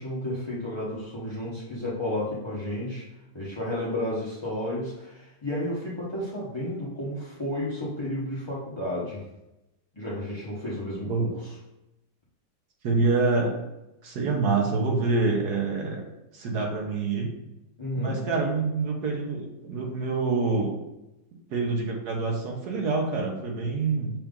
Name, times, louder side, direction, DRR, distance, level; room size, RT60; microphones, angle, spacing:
voice 1, 0.0-3.1 3.3-9.2 9.9-11.3 17.8-18.2, left 1 dB, 30° left, -8 dB, 0.5 m, -32 dB
voice 2, 12.8-13.6 14.0-16.0 16.3-17.3 17.9-20.7 21.5-24.1, right 3 dB, 60° right, 1 dB, 1.3 m, -26 dB
5.8 x 2.5 x 3.6 m, 0.93 s
omnidirectional pair, 2.1 m